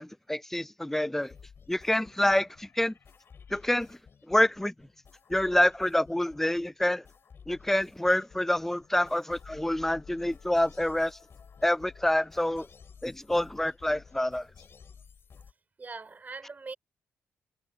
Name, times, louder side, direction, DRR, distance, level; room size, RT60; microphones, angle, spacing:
voice 1, 0.0-1.3 1.7-2.9 3.5-4.0 4.3-4.7 5.3-7.0 7.5-11.2 11.6-12.7 13.0-14.5, left 1 dB, 5° left, 0.3 m, -27 dB
sound 1, 1.2-15.5, left 6 dB, 55° left, 4.1 m, -54 dB
voice 2, 15.8-16.7, right 4 dB, 35° right, 4.6 m, -41 dB
cardioid pair, 65°, 5 cm